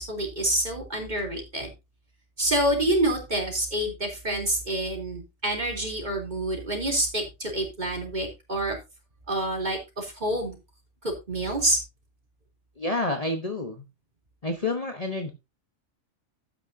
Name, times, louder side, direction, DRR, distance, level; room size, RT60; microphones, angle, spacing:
voice 1, 0.0-1.7 2.4-8.8 9.3-10.6 11.0-11.8, right 1 dB, 35° right, 2 dB, 3.6 m, -27 dB
voice 2, 12.8-13.8 14.4-15.3, left 2 dB, 30° left, 5 dB, 1.1 m, -29 dB
12.5 x 9.4 x 2.7 m, 0.25 s
omnidirectional pair, 1.3 m